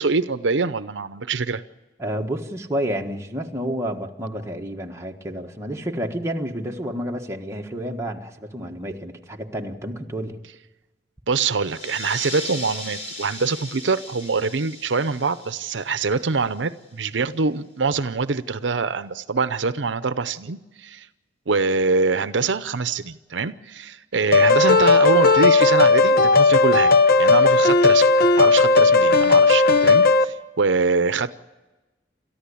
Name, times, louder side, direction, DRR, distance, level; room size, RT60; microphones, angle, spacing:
voice 1, 0.0-1.6 11.3-21.1 21.5-26.9 27.2-28.1 28.4-31.3, right 4 dB, 80° right, 13 dB, 0.7 m, -24 dB
voice 2, 2.0-10.4, equal, 15° right, 1 dB, 1.5 m, -30 dB
sound 1, 11.6-16.8, left 1 dB, 40° left, 3.7 m, -37 dB
sound 2, 24.3-30.2, left 3 dB, 55° left, 0.9 m, -15 dB
28.5 x 14.0 x 8.5 m, 1.1 s
head